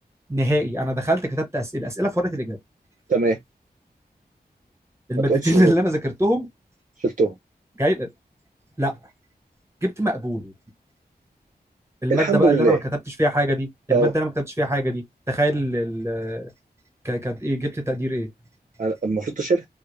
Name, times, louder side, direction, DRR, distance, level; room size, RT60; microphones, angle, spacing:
voice 1, 0.3-2.6 5.1-6.5 7.8-8.1 8.8-9.0 9.8-10.5 12.0-12.8 13.2-16.5 17.0-18.3, equal, 15° right, 1.1 m, -23 dB
voice 2, 5.3-5.7 7.0-7.3 12.1-12.8 13.9-14.1 18.8-19.6, right 3 dB, 50° right, 0.5 m, -20 dB
2.3 x 2.0 x 3.0 m
wide cardioid pair, 55°, 17 cm